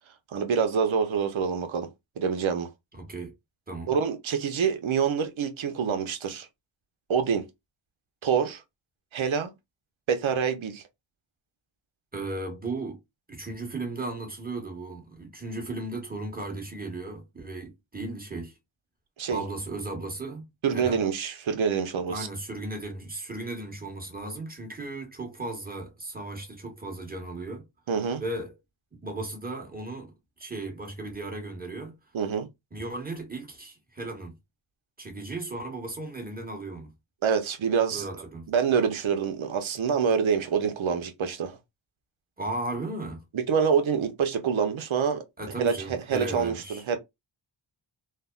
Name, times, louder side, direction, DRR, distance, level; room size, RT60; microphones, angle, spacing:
voice 1, 0.3-1.9 2.2-2.7 3.9-6.5 7.1-7.4 8.2-8.6 9.1-9.5 10.1-10.8 19.2-19.4 20.6-22.3 27.9-28.2 32.1-32.5 37.2-38.1 38.5-41.6 43.3-45.2 45.6-47.0, right 6 dB, 70° right, 0.8 m, -26 dB
voice 2, 2.9-3.3 3.7-3.9 12.1-13.0 13.3-18.5 19.3-20.5 20.7-21.0 22.1-27.6 28.2-28.5 28.9-31.9 32.7-34.3 35.0-36.9 37.9-38.5 42.4-43.2 45.4-46.8, right 2 dB, 20° right, 1.3 m, -36 dB
3.3 x 2.1 x 2.3 m
cardioid pair, 50°, 49 cm